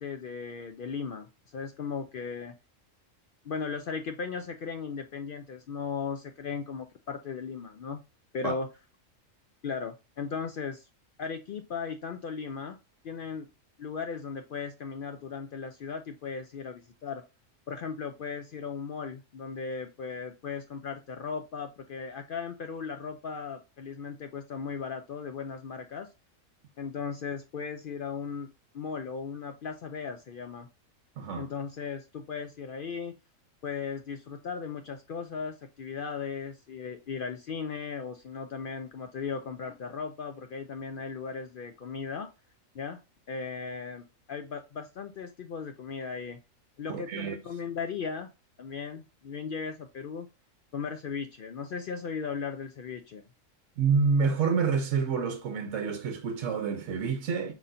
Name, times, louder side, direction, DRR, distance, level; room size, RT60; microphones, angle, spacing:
voice 1, 0.0-2.5 3.4-8.0 8.3-8.7 9.6-10.9 11.2-12.8 13.0-13.5 13.8-17.2 17.7-26.1 26.8-28.5 28.7-30.7 31.4-33.2 33.6-42.3 42.7-43.0 43.3-46.4 46.8-48.3 48.6-50.3 50.7-53.3, left 5 dB, 70° left, 0.5 m, -37 dB
voice 2, 31.2-31.5 46.9-47.4 53.8-57.5, right 5 dB, 65° right, 1.0 m, -28 dB
4.8 x 4.1 x 2.6 m
omnidirectional pair, 1.4 m